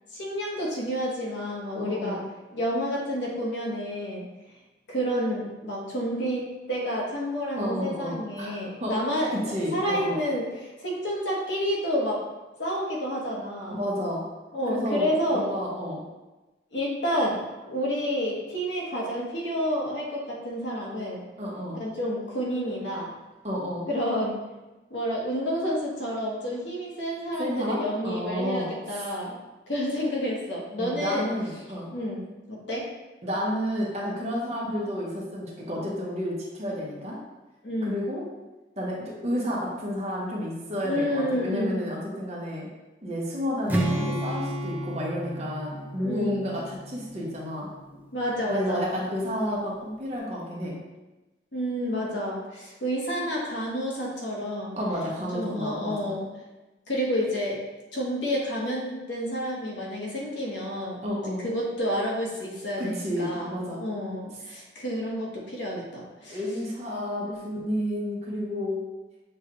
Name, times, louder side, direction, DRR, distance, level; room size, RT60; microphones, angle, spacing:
voice 1, 0.1-2.2 2.5-4.3 4.9-9.3 9.7-12.2 12.6-13.8 14.5-15.6 16.7-21.2 21.8-23.1 23.9-24.4 24.9-29.4 29.7-31.3 31.9-32.9 37.6-38.0 40.8-41.8 46.0-46.4 48.1-48.9 51.5-54.8 55.3-56.2 56.9-57.6 57.9-61.0 61.4-63.5 63.8-66.4 67.2-67.4, equal, 80° left, -3 dB, 1.1 m, -29 dB
voice 2, 1.8-2.2 7.6-8.9 9.3-10.2 13.7-14.2 14.7-16.1 21.4-21.8 23.4-23.8 27.4-29.0 30.8-31.9 33.2-37.2 37.8-38.2 38.8-42.7 43.0-47.7 48.5-50.8 54.8-56.1 61.0-61.5 62.8-63.8 66.3-68.8, equal, 35° right, -3 dB, 0.8 m, -31 dB
Strum, 43.7-47.8, right 1 dB, 10° right, 0.4 m, -31 dB
6.2 x 2.3 x 2.9 m, 1.1 s
head